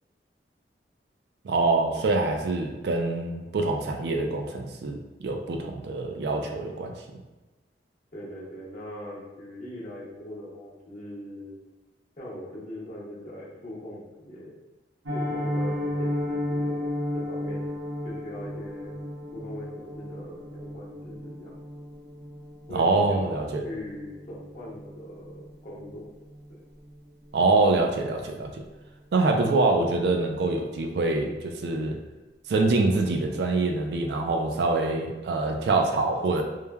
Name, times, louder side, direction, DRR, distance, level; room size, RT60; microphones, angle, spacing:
voice 1, 1.4-6.9 22.7-23.6 27.3-28.6 29.1-32.0 32.5-36.4, right 3 dB, 65° right, 3 dB, 0.3 m, -25 dB
voice 2, 8.1-11.6 12.2-14.5 15.1-16.9 17.1-17.7 18.0-18.9 19.3-21.5 22.7-26.0, left 1 dB, 45° left, -6 dB, 0.8 m, -40 dB
Piano, 15.0-25.9 26.2-26.4 26.8-26.9 27.3-27.5 27.8-27.9, left 1 dB, 90° right, 0.7 m, -34 dB
3.1 x 2.1 x 2.2 m, 1.2 s
head